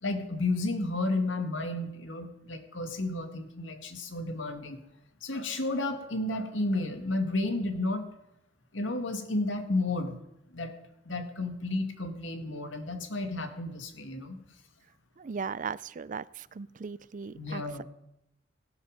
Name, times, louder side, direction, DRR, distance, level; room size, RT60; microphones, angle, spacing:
voice 1, 0.0-4.8 5.2-8.1 8.7-10.2 10.5-10.8 11.1-14.4 17.3-17.8, left 2 dB, 80° left, 6 dB, 2.1 m, -32 dB
voice 2, 15.2-17.8, right 5 dB, 45° right, 19 dB, 0.4 m, -38 dB
16.5 x 12.5 x 5.1 m, 0.85 s
head